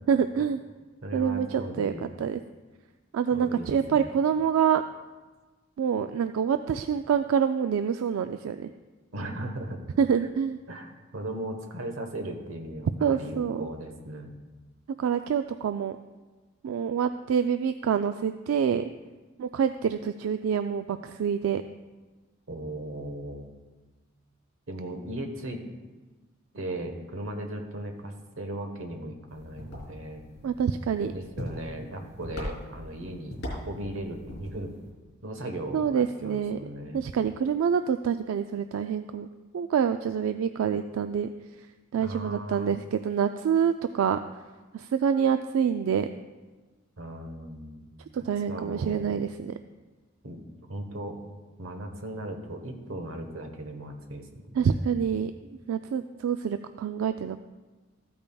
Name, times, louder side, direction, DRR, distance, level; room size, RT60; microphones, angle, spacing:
voice 1, 0.1-0.6 1.1-2.4 3.1-4.8 5.8-8.7 10.0-10.6 13.0-13.7 15.0-16.0 16.6-18.9 19.4-21.6 30.4-31.1 35.7-36.6 36.9-39.3 39.5-41.3 41.9-44.2 44.7-46.1 48.1-49.5 54.6-55.3 55.7-57.4, right 7 dB, 90° right, 9 dB, 0.3 m, -26 dB
voice 2, 1.0-2.0 3.3-4.1 9.1-9.8 10.7-14.3 22.5-23.5 24.7-25.6 26.5-30.2 31.0-34.8 35.2-37.1 42.0-42.7 47.0-47.8 48.5-49.1 50.2-50.4 50.7-51.2 51.6-54.9, right 1 dB, 70° right, 4 dB, 1.2 m, -37 dB
sound 1, 29.3-34.9, equal, 60° left, 3.3 m, -41 dB
14.0 x 8.6 x 2.3 m, 1.3 s
head